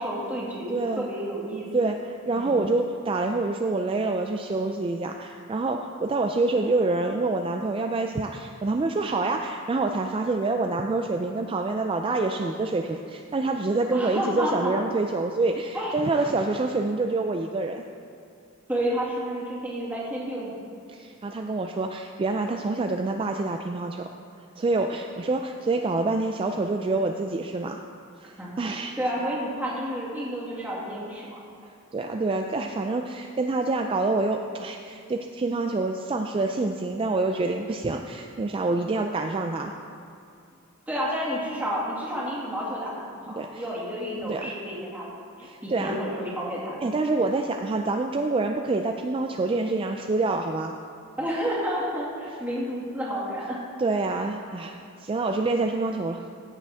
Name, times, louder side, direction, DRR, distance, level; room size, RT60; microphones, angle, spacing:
voice 1, 0.0-1.7 2.3-2.6 13.9-14.7 15.7-15.9 18.7-20.6 28.4-31.4 40.9-45.1 45.4-46.8 51.2-53.6, equal, 10° right, -7 dB, 2.1 m, -30 dB
voice 2, 0.7-1.1 1.7-17.8 20.9-24.1 24.6-27.8 28.2-28.9 31.9-39.7 43.3-43.6 44.2-44.4 45.4-46.0 46.8-50.8 53.8-56.3, right 3 dB, 25° right, 4 dB, 0.3 m, -27 dB
15.5 x 6.8 x 3.5 m, 2.4 s
head